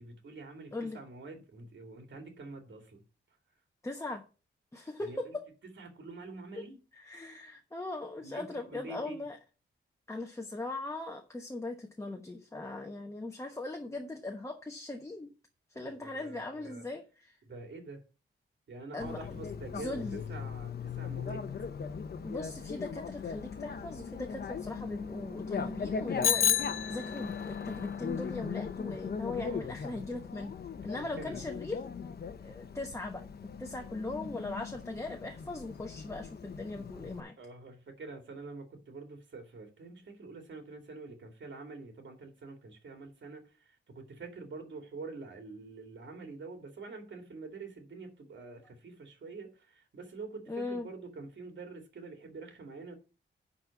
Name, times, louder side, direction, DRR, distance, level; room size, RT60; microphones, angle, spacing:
voice 1, 0.0-3.0 4.7-5.4 5.6-6.8 8.2-9.2 15.8-16.9 17.4-18.0 18.7-21.5 29.3-29.8 31.1-31.4 37.4-52.9, right 3 dB, 65° right, 2.6 m, -46 dB
voice 2, 3.8-4.2 4.7-5.4 6.5-6.6 6.9-9.4 10.1-15.3 15.7-17.4 18.9-19.2 19.7-20.2 22.2-26.6 26.9-30.5 30.8-31.9 32.4-33.2 33.6-37.4 50.5-50.9, left 2 dB, 15° left, 1.0 m, -39 dB
Bicycle, 19.0-37.2, left 6 dB, 50° left, 1.0 m, -39 dB
Bicycle bell, 26.2-27.5, left 8 dB, 85° left, 0.7 m, -28 dB
10.5 x 4.2 x 7.1 m
wide cardioid pair, 165°, 20 cm